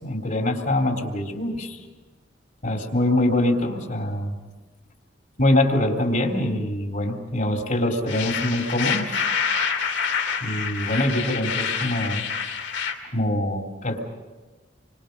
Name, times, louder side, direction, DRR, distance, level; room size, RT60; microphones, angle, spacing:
voice 1, 0.0-1.8 2.6-4.4 5.4-9.3 10.4-12.2 13.1-14.0, left 1 dB, 50° left, 1 dB, 3.4 m, -24 dB
sound 1, 8.1-12.9, left 6 dB, 70° left, 2.7 m, -27 dB
28.0 x 25.0 x 5.4 m, 1.3 s
head